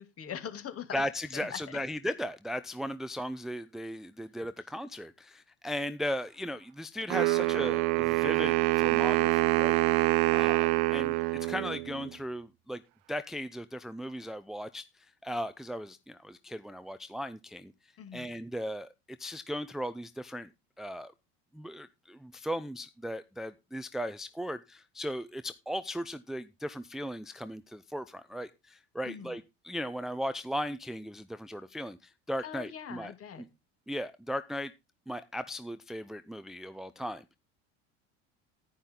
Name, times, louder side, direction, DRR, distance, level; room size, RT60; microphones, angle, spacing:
voice 1, 0.0-1.0 1.5-1.8 18.0-18.3 29.0-29.4 32.4-33.4, left 8 dB, 40° left, 2.6 m, -42 dB
voice 2, 0.9-9.8 10.3-12.8 13.1-17.7 18.1-18.9 19.2-20.5 20.8-21.1 21.5-33.1 33.4-33.5 33.9-34.7 35.1-37.4, equal, ahead, 0.6 m, -37 dB
Wind instrument woodwind instrument, 7.1-12.1, right 22 dB, 70° right, 0.8 m, -26 dB
10.0 x 10.0 x 3.8 m
supercardioid pair, 95°, 34 cm